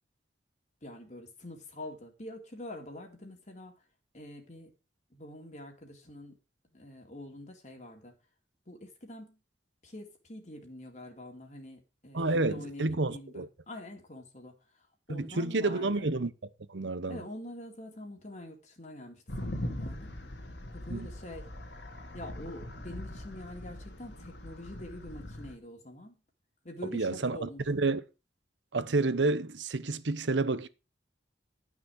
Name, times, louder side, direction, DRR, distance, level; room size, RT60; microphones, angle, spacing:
voice 1, 0.8-3.8 4.1-4.7 5.1-6.4 6.7-8.1 8.7-9.4 9.8-16.1 17.1-20.1 20.7-21.5 22.1-26.1 26.6-27.8, left 1 dB, 40° left, 2.2 m, -45 dB
voice 2, 12.1-13.5 15.1-16.3 16.7-17.2 20.9-21.1 26.9-28.0 28.7-30.7, right 3 dB, 90° right, 0.9 m, -29 dB
sound 1, 19.3-25.5, left 1 dB, 75° left, 2.5 m, -41 dB
11.5 x 6.1 x 6.3 m
head